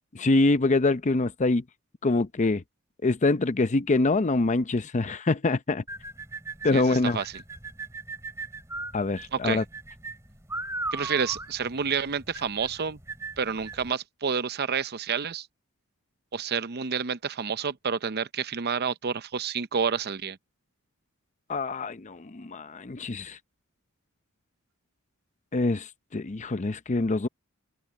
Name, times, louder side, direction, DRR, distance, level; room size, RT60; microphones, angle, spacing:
voice 1, 0.2-1.6 2.0-2.6 3.0-5.8 6.6-7.2 8.9-9.6 21.5-23.4 25.5-27.3, left 3 dB, 35° left, 0.6 m, -25 dB
sound 1, 5.9-13.9, right 2 dB, 15° right, 2.7 m, -38 dB
voice 2, 6.7-7.4 9.3-9.6 10.9-13.0 13.4-15.5 16.3-20.4, right 6 dB, 50° right, 0.7 m, -29 dB
head